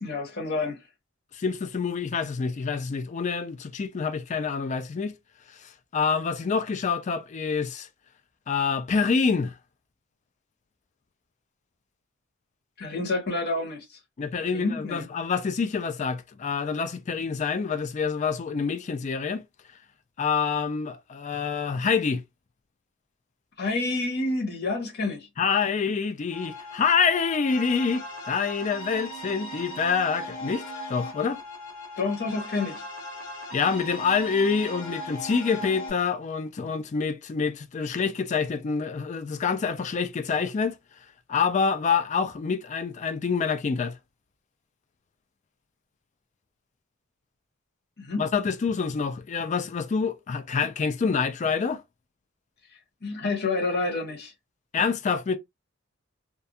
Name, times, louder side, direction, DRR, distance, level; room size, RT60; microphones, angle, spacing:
voice 1, 0.0-0.8 12.8-14.0 14.4-15.0 23.6-25.3 32.0-32.8 48.0-48.2 53.0-54.3, left 3 dB, 50° left, 1.0 m, -29 dB
voice 2, 1.3-5.1 5.6-7.9 8.5-9.5 14.2-19.4 20.2-22.2 25.4-30.6 30.9-31.4 33.5-40.8 41.3-44.0 48.2-51.8 54.7-55.4, left 5 dB, 35° left, 0.3 m, -26 dB
sound 1, 26.3-35.9, left 1 dB, 80° left, 0.8 m, -39 dB
2.3 x 2.3 x 2.7 m
head